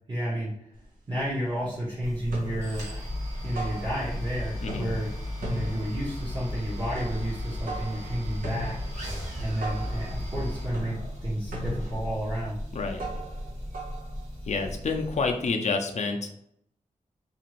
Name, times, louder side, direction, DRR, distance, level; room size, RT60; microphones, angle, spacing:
voice 1, 0.1-0.5 1.1-2.9 3.4-5.1 5.4-8.8 9.4-12.6, equal, 30° right, -9 dB, 0.9 m, -31 dB
sound 1, 0.8-0.9 1.2-1.8 2.1-4.3 4.6-14.7, right 1 dB, 85° right, 0.9 m, -39 dB
sound 2, 2.0-15.5, left 1 dB, 55° right, 1.3 m, -36 dB
voice 2, 4.6-5.0 12.7-13.0 14.5-16.3, left 4 dB, 55° left, 4 dB, 0.5 m, -28 dB
2.6 x 2.4 x 2.9 m, 0.73 s
wide cardioid pair, 90°, 14 cm